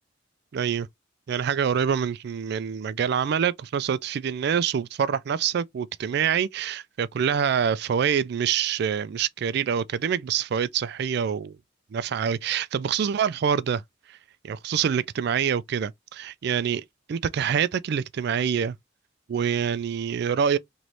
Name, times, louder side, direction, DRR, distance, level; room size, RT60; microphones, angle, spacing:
voice 1, 0.5-0.9 1.3-11.6 11.9-13.8 14.1-14.2 14.4-18.8 19.3-20.6, right 7 dB, 60° right, 0.3 m, -26 dB
3.1 x 3.1 x 3.9 m
head